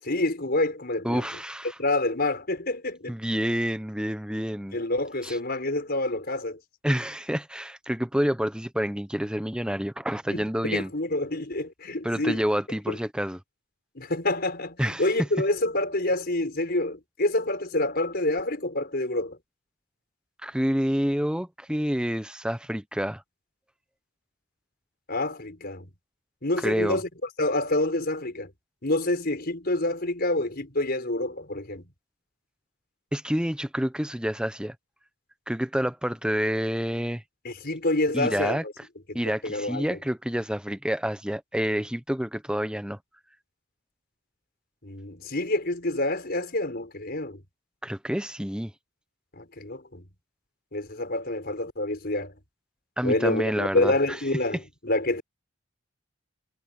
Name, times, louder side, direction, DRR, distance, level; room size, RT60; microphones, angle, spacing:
voice 1, 0.0-1.2 1.8-3.2 4.7-6.6 10.3-12.4 12.9-13.0 14.0-19.4 25.1-25.9 26.4-27.1 27.4-28.5 28.8-31.8 37.4-38.7 39.1-40.0 44.8-47.4 49.3-50.0 50.7-52.3 53.0-55.2, left 2 dB, 45° left, 5.4 m, -27 dB
voice 2, 1.0-1.7 3.1-4.8 5.2-5.4 6.8-10.9 12.0-13.4 14.8-15.3 20.4-23.2 26.6-27.0 33.1-34.7 35.5-37.2 38.1-38.6 39.1-43.0 47.8-48.7 53.0-53.9, equal, 5° right, 1.1 m, -28 dB
head